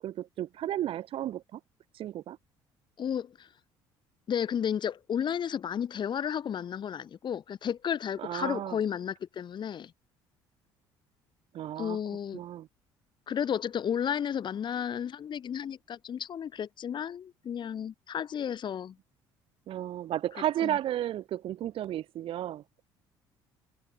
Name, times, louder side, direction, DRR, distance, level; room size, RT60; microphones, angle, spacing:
voice 1, 0.0-1.6 1.9-2.4 8.2-8.8 11.5-12.0 12.3-12.7 19.7-22.6, right 12 dB, 55° right, 0.5 m, -33 dB
voice 2, 3.0-3.5 4.3-9.9 11.8-12.4 13.3-19.0 20.6-20.8, left 8 dB, 45° left, 0.8 m, -33 dB
hypercardioid pair, 65°, 11 cm